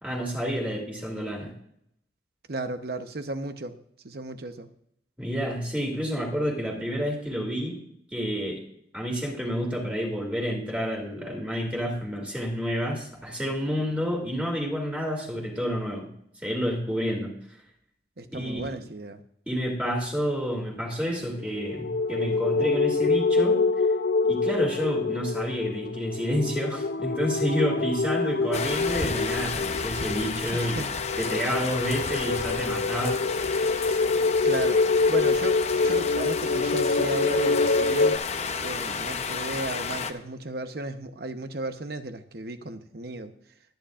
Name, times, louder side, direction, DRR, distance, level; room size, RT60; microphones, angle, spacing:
voice 1, 0.0-1.5 5.2-7.8 8.1-8.6 8.9-16.1 16.4-17.3 18.3-18.6 19.5-23.6 24.3-30.8 31.2-33.2, equal, 10° right, -1 dB, 2.5 m, -29 dB
voice 2, 2.5-3.8 4.0-4.7 18.2-19.2 30.5-30.9 34.4-34.8 35.1-38.2 38.6-43.3, right 2 dB, 60° right, 9 dB, 0.9 m, -34 dB
sound 1, 21.4-38.2, left 3 dB, 70° left, 0.5 m, -26 dB
sound 2, 28.5-40.1, left 5 dB, 40° left, 0.7 m, -32 dB
19.5 x 10.0 x 2.5 m, 0.74 s
head